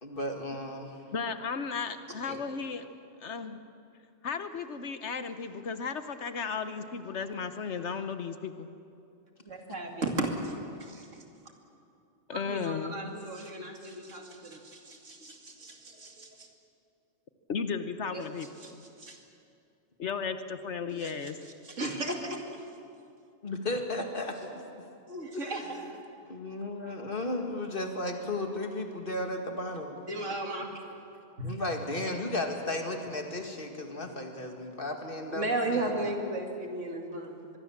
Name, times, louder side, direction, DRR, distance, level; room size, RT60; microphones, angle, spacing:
voice 1, 0.0-1.0 23.4-24.9 25.3-25.6 26.3-30.0 31.4-36.1, left 2 dB, 45° left, 4 dB, 2.2 m, -35 dB
voice 2, 1.1-2.9 3.2-3.6 4.2-8.7 12.3-13.2 17.5-18.8 20.0-21.4, left 5 dB, 65° left, 10 dB, 1.2 m, -35 dB
voice 3, 9.4-11.2 12.3-16.5 18.1-18.2 18.6-18.7 19.0-19.2 20.9-21.1 21.6-22.6 25.1-26.0 30.0-31.0 31.4-31.6 35.3-37.6, right 2 dB, 75° right, 2 dB, 2.8 m, -35 dB
23.5 x 22.0 x 7.3 m, 2.6 s
omnidirectional pair, 1.3 m